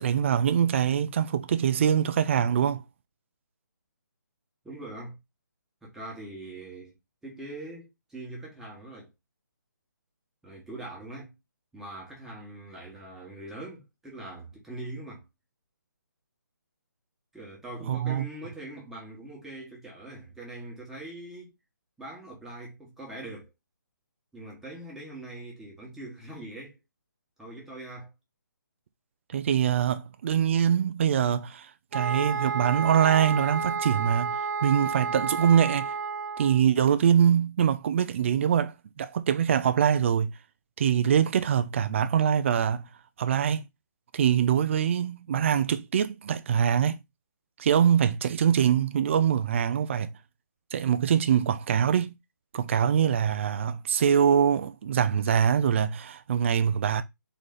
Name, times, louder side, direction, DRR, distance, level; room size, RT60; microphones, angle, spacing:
voice 1, 0.0-2.8 17.9-18.3 29.3-35.9 36.4-40.3 40.8-42.9 43.2-43.6 44.1-47.0 47.6-50.1 50.7-52.1 52.5-57.0, right 8 dB, 40° right, 0.5 m, -24 dB
voice 2, 4.6-5.2 5.8-6.9 7.2-9.1 10.4-11.3 11.7-15.2 17.3-21.5 22.0-23.5 24.3-26.8 27.4-28.1, right 2 dB, 5° right, 1.3 m, -42 dB
sound 1, 31.9-36.6, right 5 dB, 65° right, 0.8 m, -31 dB
4.0 x 3.2 x 3.8 m
hypercardioid pair, 155°, 11 cm